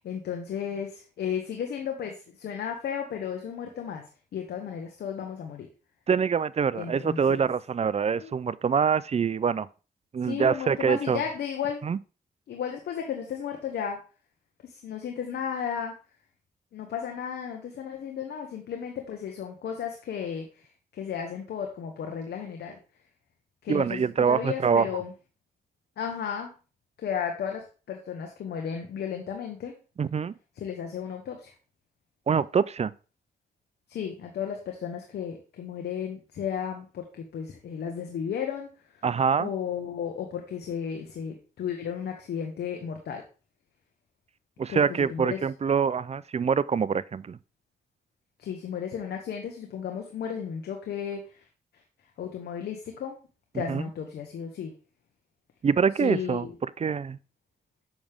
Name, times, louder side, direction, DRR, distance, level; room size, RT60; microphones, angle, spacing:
voice 1, 0.0-4.0 4.3-5.7 6.7-7.5 8.2-8.3 10.2-11.8 12.5-14.0 14.6-15.9 16.7-20.7 20.9-22.8 23.6-25.1 26.0-26.5 27.0-29.7 30.6-31.5 33.9-38.7 39.4-43.2 44.7-45.4 48.4-51.5 52.2-53.2 53.5-54.7 56.0-56.5, left 8 dB, 85° left, 1.1 m, -34 dB
voice 2, 6.1-9.7 10.1-11.2 11.8-12.0 23.7-24.9 30.0-30.3 32.3-32.9 39.0-39.5 44.6-47.4 53.5-53.8 55.6-56.5 56.8-57.2, right 6 dB, 40° right, 0.4 m, -25 dB
7.1 x 6.3 x 3.5 m
cardioid pair, 60°, 17 cm